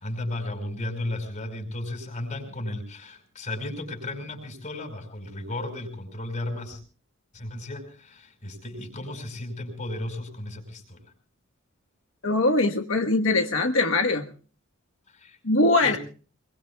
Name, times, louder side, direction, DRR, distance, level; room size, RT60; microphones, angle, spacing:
voice 1, 0.0-6.8 7.3-11.0 15.1-15.4 15.8-16.0, left 1 dB, 40° left, 6 dB, 5.4 m, -34 dB
voice 2, 12.2-14.3 15.4-16.0, left 2 dB, 80° left, 4 dB, 1.2 m, -22 dB
25.0 x 22.5 x 2.3 m, 0.39 s
head